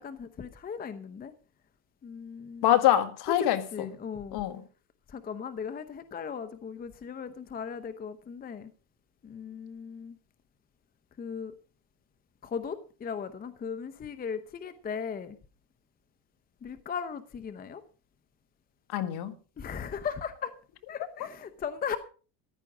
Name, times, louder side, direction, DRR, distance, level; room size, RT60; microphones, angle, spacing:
voice 1, 0.0-1.3 2.0-2.7 3.4-4.4 5.1-8.7 9.2-10.1 11.2-11.5 12.4-15.4 16.6-17.8 19.6-20.5 20.9-22.0, left 6 dB, 20° left, 0.8 m, -37 dB
voice 2, 2.6-3.9 4.3-4.6 18.9-19.3, left 12 dB, 55° left, 1.8 m, -25 dB
14.5 x 11.0 x 5.0 m
cardioid pair, 145°, 48 cm